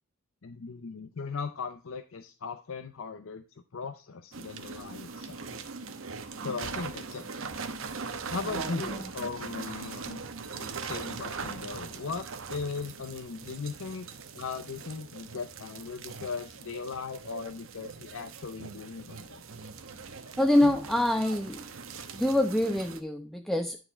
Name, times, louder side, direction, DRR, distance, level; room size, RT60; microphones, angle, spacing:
voice 1, 0.4-3.4 3.7-5.4 6.4-7.3 8.3-10.2 10.5-14.1 14.3-19.4, left 4 dB, 70° left, 7 dB, 0.6 m, -38 dB
sound 1, 4.3-23.0, right 5 dB, 70° right, 0.9 m, -41 dB
voice 2, 8.5-9.1 20.4-21.6 22.1-23.8, left 1 dB, ahead, 6 dB, 0.3 m, -26 dB
10.5 x 4.8 x 4.2 m, 0.33 s
head